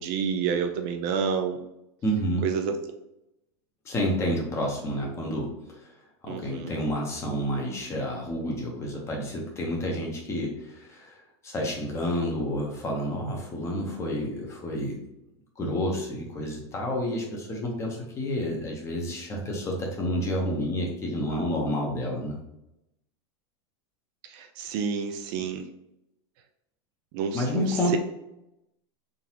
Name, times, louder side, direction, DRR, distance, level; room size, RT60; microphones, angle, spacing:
voice 1, 0.0-1.6 2.4-3.0 6.3-6.7 24.2-25.6 27.1-28.0, right 6 dB, 45° right, 5 dB, 0.5 m, -29 dB
voice 2, 2.0-2.4 3.8-5.9 6.2-11.2 11.4-15.0 15.6-22.3 27.3-28.0, equal, 20° left, -1 dB, 1.0 m, -29 dB
3.9 x 3.5 x 2.9 m, 0.86 s
supercardioid pair, 155°, 14 cm